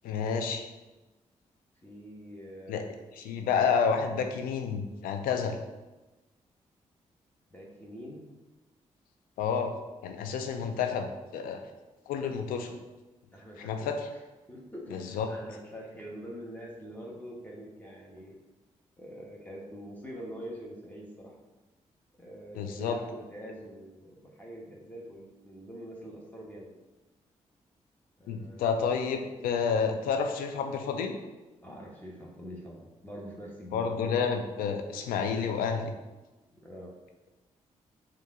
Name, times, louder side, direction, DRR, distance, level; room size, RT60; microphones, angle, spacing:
voice 1, 0.0-0.7 2.7-2.8 3.2-5.6 9.4-9.7 10.0-11.6 12.1-12.8 13.6-14.1 14.9-15.3 22.6-23.0 28.3-31.1 33.7-35.9, left 6 dB, 85° left, 6 dB, 0.4 m, -30 dB
voice 2, 1.8-2.8 7.5-8.2 13.3-14.2 14.5-18.4 19.0-21.3 22.2-26.7 28.2-28.9 31.6-33.9 36.6-37.0, equal, 10° left, -3 dB, 1.2 m, -44 dB
5.4 x 2.5 x 3.7 m, 1.1 s
supercardioid pair, 45°, 15 cm